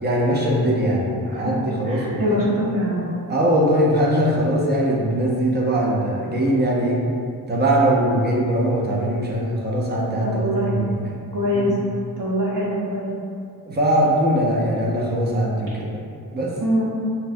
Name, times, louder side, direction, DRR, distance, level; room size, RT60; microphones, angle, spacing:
voice 1, 0.0-2.4 3.3-7.0 7.5-11.2 11.5-11.7 13.7-16.0 16.3-16.5, right 1 dB, 25° right, -3 dB, 0.4 m, -21 dB
voice 2, 1.9-3.1 10.2-10.8 11.3-11.8 12.2-13.2 16.6-16.9, equal, 50° right, -6 dB, 0.8 m, -23 dB
4.3 x 2.1 x 2.5 m, 2.3 s
wide cardioid pair, 165°, 41 cm